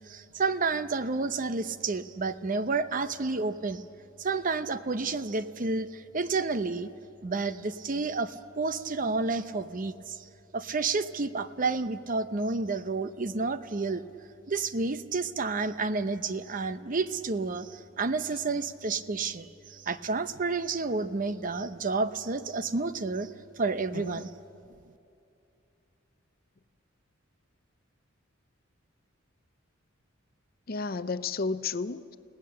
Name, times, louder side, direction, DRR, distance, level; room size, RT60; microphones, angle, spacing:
voice 1, 0.1-3.8 4.2-6.9 7.2-10.2 10.5-14.0 14.5-23.3 23.6-24.3, right 3 dB, 40° right, 0.7 m, -30 dB
voice 2, 23.9-24.3 30.7-32.2, left 4 dB, 45° left, 0.6 m, -32 dB
29.5 x 18.0 x 6.7 m
head